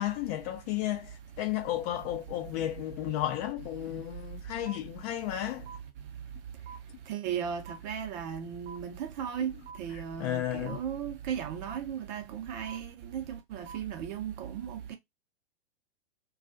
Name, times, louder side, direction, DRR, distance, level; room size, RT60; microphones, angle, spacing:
voice 1, 0.0-5.7 9.9-10.8, left 13 dB, 40° left, 0.6 m, -33 dB
sound 1, 4.7-4.8 5.7-5.8 6.7-6.8 7.7-7.8 8.7-8.8 9.7-9.8 10.7-10.8 11.7-11.8 12.7-12.8 13.7-13.8, right 6 dB, 80° right, 0.8 m, -44 dB
voice 2, 7.1-9.5 9.8-15.0, right 8 dB, 45° right, 0.7 m, -36 dB
2.3 x 2.3 x 2.5 m
hypercardioid pair, 110°, 32 cm